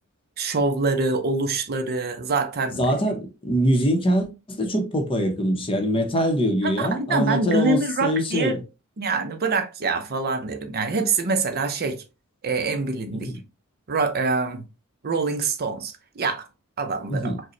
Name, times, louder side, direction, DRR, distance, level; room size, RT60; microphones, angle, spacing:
voice 1, 0.4-2.8 6.6-8.6 9.0-12.0 12.4-13.3 13.9-14.6 15.0-16.5 16.8-17.4, right 3 dB, 45° right, 0.5 m, -25 dB
voice 2, 2.8-8.6 13.3-13.4 17.1-17.4, equal, 25° left, 0.7 m, -23 dB
4.9 x 2.1 x 2.9 m
head